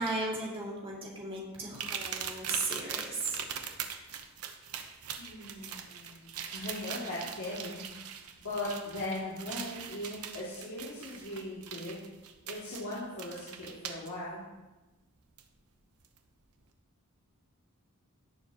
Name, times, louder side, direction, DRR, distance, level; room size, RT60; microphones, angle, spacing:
voice 1, 0.0-3.4, right 2 dB, 25° right, -5 dB, 2.4 m, -35 dB
sound 1, 1.7-14.1 15.4-15.5 16.0-16.2, right 7 dB, 90° right, 0.9 m, -41 dB
voice 2, 5.2-7.9 8.4-12.0 12.4-14.4, left 1 dB, 85° left, -9 dB, 2.6 m, -39 dB
17.5 x 7.0 x 3.0 m, 1.1 s
head